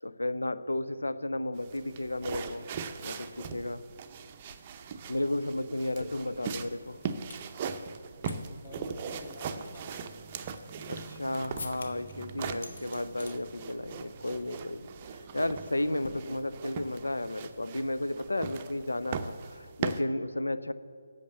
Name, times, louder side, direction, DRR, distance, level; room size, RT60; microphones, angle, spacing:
voice 1, 0.0-2.7 3.0-3.8 5.1-7.0 10.9-14.9 15.3-20.7, left 1 dB, 80° left, 13 dB, 0.6 m, -33 dB
sound 1, 1.6-20.0, right 6 dB, 30° right, 0.6 m, -40 dB
sound 2, 4.2-4.3 4.5-7.5 7.9-8.4 8.6-8.7 9.3-11.2 11.6-12.1 12.5-13.4 13.7-14.0 14.3-14.5 14.8-15.1 16.0-16.8, left 3 dB, 55° left, 1.2 m, -47 dB
voice 2, 8.2-10.1, left 3 dB, 20° left, -1 dB, 1.0 m, -49 dB
8.5 x 6.6 x 7.7 m, 2.3 s
figure-of-eight pair, 150°, 0 cm